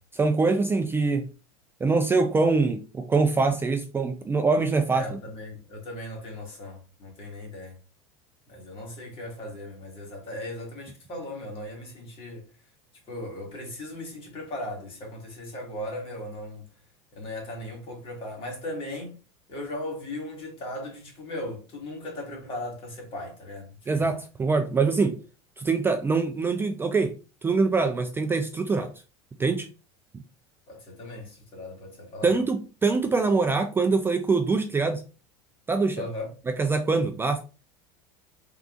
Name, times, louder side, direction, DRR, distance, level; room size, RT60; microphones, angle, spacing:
voice 1, 0.1-1.3 1.8-5.2 23.9-25.2 25.6-27.2 27.4-28.9 29.4-29.7 32.2-35.0 35.7-36.0 36.5-37.4, right 4 dB, 15° right, 0.3 m, -24 dB
voice 2, 4.9-7.8 8.5-12.4 13.1-16.7 17.1-19.2 19.5-24.1 30.7-32.4 36.0-36.3, left 1 dB, 40° left, 1.6 m, -37 dB
3.6 x 2.4 x 2.4 m
supercardioid pair, 95°, 14 cm